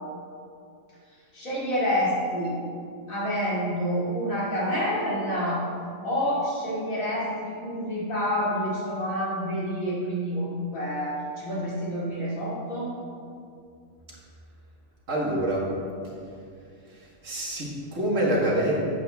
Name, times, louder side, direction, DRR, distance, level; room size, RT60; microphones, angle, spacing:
voice 1, 1.3-2.6 3.1-5.6 6.0-12.9, equal, 80° left, -7 dB, 3.0 m, -28 dB
voice 2, 15.1-15.6 16.9-18.8, right 1 dB, 65° right, -3 dB, 2.0 m, -26 dB
10.5 x 8.2 x 3.5 m, 2.4 s
omnidirectional pair, 1.4 m